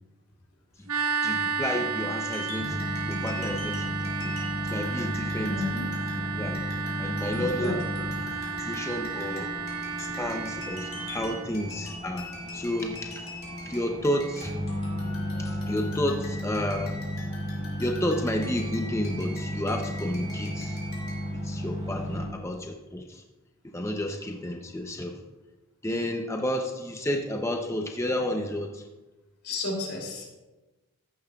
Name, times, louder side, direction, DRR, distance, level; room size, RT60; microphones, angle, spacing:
sound 1, 0.9-11.5, right 5 dB, 90° right, 1.1 m, -33 dB
voice 1, 1.2-2.8 3.1-5.6 6.2-6.6 7.0-7.8 8.6-9.6 10.0-13.3 13.6-14.5 15.4-17.0 17.8-20.8 21.3-23.2 23.6-25.2 25.8-28.8, left 1 dB, 10° left, 3 dB, 0.5 m, -31 dB
sound 2, 2.2-21.3, left 1 dB, 65° left, 3.2 m, -43 dB
sound 3, 2.6-22.3, equal, 30° right, 2.3 m, -34 dB
voice 2, 5.5-5.8 7.3-7.8 22.1-22.3 29.4-30.3, left 2 dB, 85° left, 0 dB, 2.8 m, -32 dB
14.0 x 10.5 x 2.3 m, 1.1 s
head